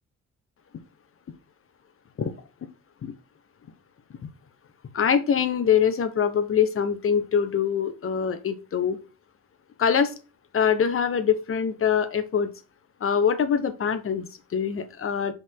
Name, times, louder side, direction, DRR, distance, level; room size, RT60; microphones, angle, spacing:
voice 1, 4.9-9.0 9.8-10.1 10.5-12.5 13.0-15.3, left 7 dB, 45° left, 10 dB, 1.1 m, -24 dB
5.4 x 3.8 x 4.7 m, 0.32 s
cardioid pair, 90°, 30 cm